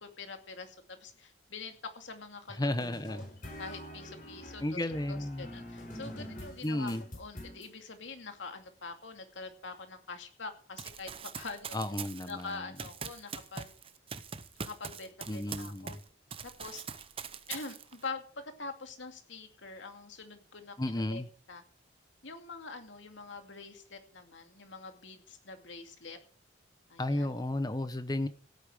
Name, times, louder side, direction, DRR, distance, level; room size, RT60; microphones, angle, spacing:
voice 1, 0.0-3.2 3.6-4.8 5.1-11.8 12.3-13.7 14.6-16.0 16.4-16.8 17.5-21.2 21.5-21.6 22.2-26.2 26.9-27.5, left 4 dB, 80° left, 6 dB, 2.4 m, -45 dB
voice 2, 2.6-3.2 4.6-5.5 6.6-7.0 11.7-12.7 15.3-16.0 20.8-21.3 27.0-28.3, left 1 dB, 20° left, 12 dB, 0.8 m, -33 dB
sound 1, 2.8-7.7, equal, 45° left, 5.0 m, -45 dB
Run, 10.8-16.0 16.3-18.1, right 6 dB, 30° right, 0.8 m, -42 dB
16.5 x 8.8 x 4.9 m, 0.42 s
head